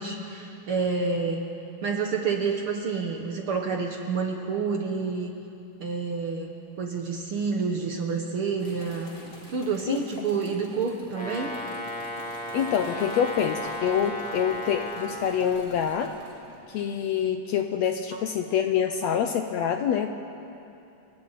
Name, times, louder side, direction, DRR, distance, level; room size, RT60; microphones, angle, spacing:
voice 1, 0.0-1.4 1.8-5.3 5.8-6.5 6.8-9.1 9.5-11.5 14.2-14.3, right 5 dB, 60° right, 2 dB, 1.5 m, -28 dB
sound 1, 8.6-16.6, left 1 dB, 20° left, 3.0 m, -48 dB
Brass instrument, 11.1-15.2, equal, ahead, 4.1 m, -35 dB
voice 2, 12.5-16.1 16.7-20.1, left 8 dB, 75° left, 6 dB, 1.6 m, -26 dB
29.5 x 23.5 x 4.1 m, 2.8 s
omnidirectional pair, 3.8 m